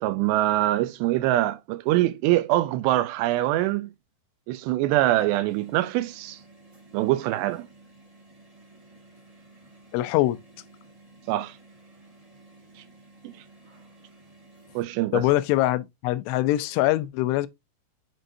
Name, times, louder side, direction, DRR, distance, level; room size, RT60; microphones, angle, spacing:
voice 1, 0.0-3.9 4.5-6.4 6.9-7.7 11.3-11.6 13.2-13.3 14.8-15.3, right 15 dB, 85° right, 2.7 m, -24 dB
sound 1, 5.5-14.8, right 2 dB, 35° right, 0.5 m, -53 dB
voice 2, 9.9-10.4 15.1-17.5, left 16 dB, 85° left, 2.7 m, -23 dB
7.6 x 4.7 x 2.6 m
omnidirectional pair, 5.0 m